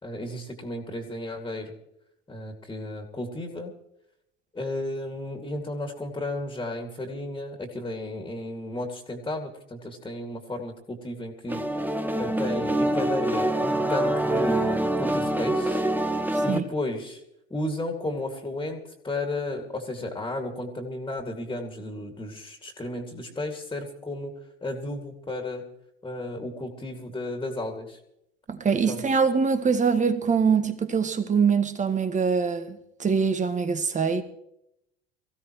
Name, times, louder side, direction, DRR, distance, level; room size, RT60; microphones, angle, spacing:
voice 1, 0.0-1.8 2.3-3.7 4.5-15.8 16.4-17.2 17.5-25.7 26.0-28.0 28.8-29.0, left 1 dB, 10° left, 2.4 m, -33 dB
sound 1, 11.5-16.6, right 1 dB, 5° right, 1.1 m, -25 dB
voice 2, 16.3-16.6 28.5-34.2, right 5 dB, 20° right, 1.6 m, -24 dB
24.0 x 16.0 x 3.1 m
figure-of-eight pair, 75°, 33 cm